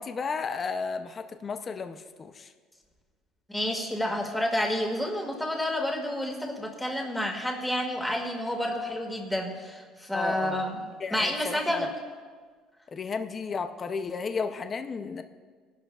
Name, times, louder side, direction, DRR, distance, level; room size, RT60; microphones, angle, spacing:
voice 1, 0.0-2.5 10.1-10.6 11.0-11.9 12.9-15.2, left 5 dB, 30° left, 8 dB, 0.6 m, -33 dB
voice 2, 3.5-10.8 11.1-11.9, left 1 dB, 5° left, 2 dB, 1.9 m, -29 dB
20.0 x 11.5 x 2.4 m, 1.5 s
cardioid pair, 125°, 0 cm